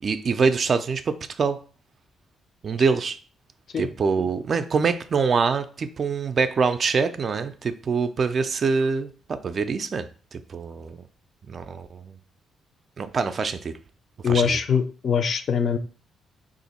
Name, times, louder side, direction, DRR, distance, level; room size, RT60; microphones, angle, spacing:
voice 1, 0.0-1.6 2.6-3.2 3.8-11.0 11.5-12.2 13.0-13.7 14.3-14.6, right 5 dB, 45° right, 10 dB, 0.4 m, -25 dB
voice 2, 14.2-15.8, left 6 dB, 50° left, 9 dB, 0.4 m, -22 dB
2.8 x 2.5 x 4.1 m, 0.40 s
cardioid pair, 90°, 0 cm